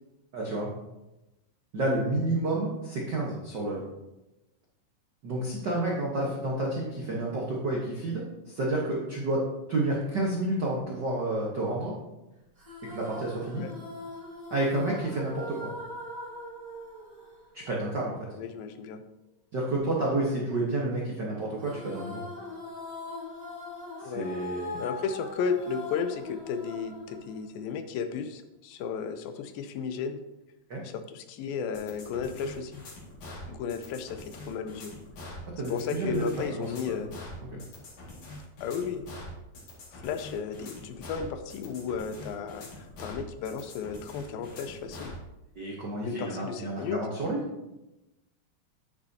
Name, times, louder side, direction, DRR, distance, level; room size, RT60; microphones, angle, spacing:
voice 1, 0.3-0.7 1.7-3.8 5.2-9.4 9.7-11.9 12.9-13.6 14.5-15.7 17.5-18.2 19.5-22.2 24.0-24.8 30.7-30.8 35.6-36.7 37.5-37.6 45.6-47.4, right 2 dB, 70° right, -4 dB, 1.0 m, -30 dB
sound 1, 12.6-18.1 21.6-28.0, left 2 dB, 20° right, 1.4 m, -41 dB
voice 2, 18.3-19.0 24.0-24.3 24.8-30.2 30.8-32.8 33.5-34.9 35.6-37.1 38.6-39.1 39.9-45.1 46.0-47.0, left 6 dB, 90° left, 9 dB, 2.5 m, -34 dB
sound 2, 31.7-45.2, left 1 dB, 60° left, 3.4 m, -44 dB
9.6 x 9.1 x 2.8 m, 0.98 s
omnidirectional pair, 4.0 m